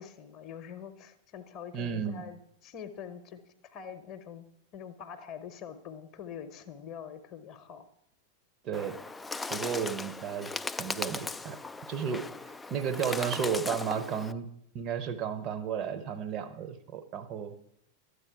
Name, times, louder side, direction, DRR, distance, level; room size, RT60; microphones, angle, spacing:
voice 1, 0.0-4.4 4.7-7.8, left 8 dB, 40° left, 9 dB, 0.8 m, -44 dB
voice 2, 1.7-2.2 8.6-9.0 9.5-10.5 10.8-11.6 11.9-12.2 12.7-14.5 14.7-17.5, right 7 dB, 35° right, 10 dB, 0.9 m, -33 dB
Bird, 8.7-14.3, left 3 dB, 10° left, 0.3 m, -38 dB
12.5 x 8.2 x 4.7 m, 0.76 s
figure-of-eight pair, 90°, 0 cm